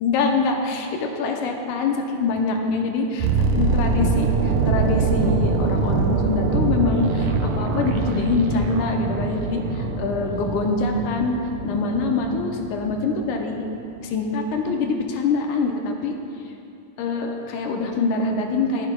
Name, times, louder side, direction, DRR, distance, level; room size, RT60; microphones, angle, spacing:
voice 1, 0.0-11.4 11.6-13.6 14.0-16.2 17.0-18.9, left 4 dB, 80° left, 2 dB, 2.1 m, -24 dB
sound 1, 3.2-13.2 13.5-13.7, right 4 dB, 75° right, 1.9 m, -24 dB
14.5 x 9.8 x 2.3 m, 2.7 s
omnidirectional pair, 3.8 m